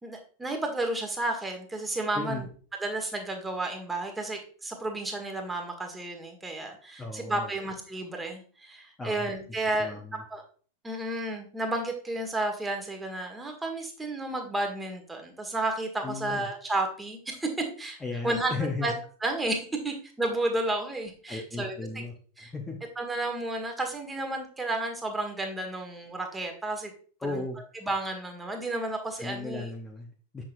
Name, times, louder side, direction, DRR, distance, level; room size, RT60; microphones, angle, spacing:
voice 1, 0.0-2.5 2.8-10.0 10.3-10.4 10.8-17.5 17.8-18.0 18.2-18.5 18.8-18.9 19.2-22.0 22.4-22.5 23.0-26.9 27.3-27.4 27.8-29.7, right 2 dB, 10° right, 3 dB, 1.5 m, -32 dB
voice 2, 2.1-2.4 7.0-7.5 9.0-9.3 9.8-10.2 16.0-16.5 18.0-18.9 21.3-22.8 27.2-27.6 29.2-30.4, left 3 dB, 10° left, 1 dB, 0.9 m, -36 dB
7.3 x 6.2 x 2.6 m, 0.41 s
figure-of-eight pair, 90°, 0 cm